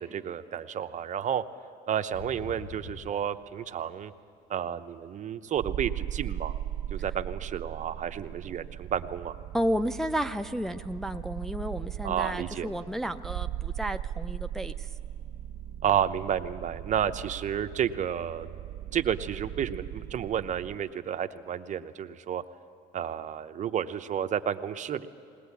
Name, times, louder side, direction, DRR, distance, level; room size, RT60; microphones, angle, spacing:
voice 1, 0.0-1.4 1.9-4.1 4.5-6.6 6.9-9.4 12.0-12.7 15.8-18.5 18.9-22.4 22.9-25.1, right 9 dB, 45° right, 10 dB, 0.8 m, -31 dB
sound 1, 2.1-5.4 5.8-8.0 8.3-8.7 9.0-10.9 11.2-11.3 11.6-12.0 12.4-12.5 14.7-14.8, left 3 dB, 75° left, 1.6 m, -47 dB
sound 2, 5.6-20.8, right 11 dB, 70° right, 1.5 m, -38 dB
voice 2, 9.5-14.9, equal, ahead, 7 dB, 0.4 m, -32 dB
21.0 x 19.0 x 8.3 m, 2.6 s
cardioid pair, 110°, 17 cm